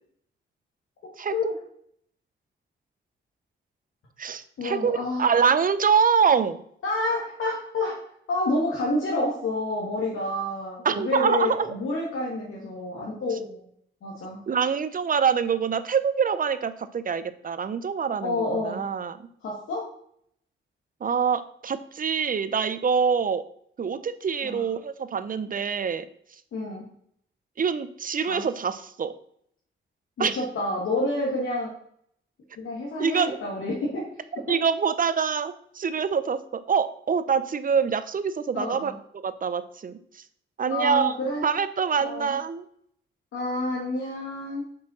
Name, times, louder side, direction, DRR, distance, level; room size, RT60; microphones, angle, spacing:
voice 1, 1.2-1.5 4.2-6.6 10.8-11.7 14.5-19.3 21.0-23.4 23.8-26.1 27.6-29.1 30.2-30.4 33.0-33.4 34.3-38.9 39.2-40.0 40.6-41.1 41.4-42.7, right 6 dB, 40° right, 13 dB, 0.6 m, -25 dB
voice 2, 4.6-5.3 6.8-8.0 8.3-13.7 14.0-14.4 18.2-18.8 19.4-19.9 24.4-24.6 26.5-26.8 28.3-28.5 30.2-31.7 32.6-34.1 38.5-38.9 40.7-41.4 42.0-42.3 43.3-44.6, left 2 dB, 80° left, -3 dB, 1.6 m, -29 dB
5.6 x 5.1 x 6.1 m, 0.67 s
cardioid pair, 90°, 21 cm